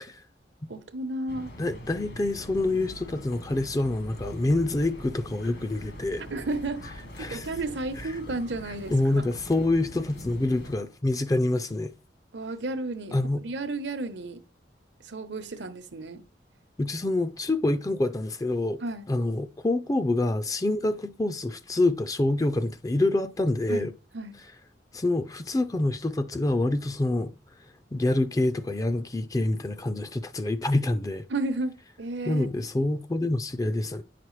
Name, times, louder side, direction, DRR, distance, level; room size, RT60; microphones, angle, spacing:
voice 1, 0.7-1.5 6.3-6.8 7.2-9.3 12.3-14.4 15.0-16.2 18.8-19.1 23.7-24.4 31.3-32.5, right 2 dB, 80° right, 0.9 m, -33 dB
sound 1, 1.3-10.8, equal, 70° left, 1.9 m, -43 dB
voice 2, 1.6-6.2 7.2-7.5 8.9-11.9 13.1-13.4 16.8-18.8 19.1-23.9 24.9-27.3 27.9-31.2 32.3-34.0, left 2 dB, 20° left, 0.4 m, -26 dB
9.8 x 5.9 x 3.2 m
head